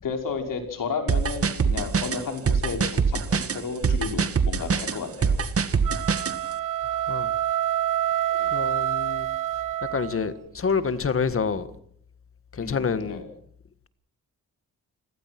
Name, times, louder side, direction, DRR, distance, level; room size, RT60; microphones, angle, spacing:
voice 1, 0.0-5.4 8.4-8.5 12.6-13.3, left 5 dB, 60° left, 5.2 m, -32 dB
sound 1, 1.1-6.4, right 5 dB, 40° right, 1.9 m, -23 dB
sound 2, 5.8-10.3, right 12 dB, 60° right, 1.1 m, -27 dB
voice 2, 8.5-9.3 9.9-11.7 12.5-13.2, left 5 dB, 35° left, 1.6 m, -27 dB
29.5 x 21.0 x 6.0 m
wide cardioid pair, 160°, 36 cm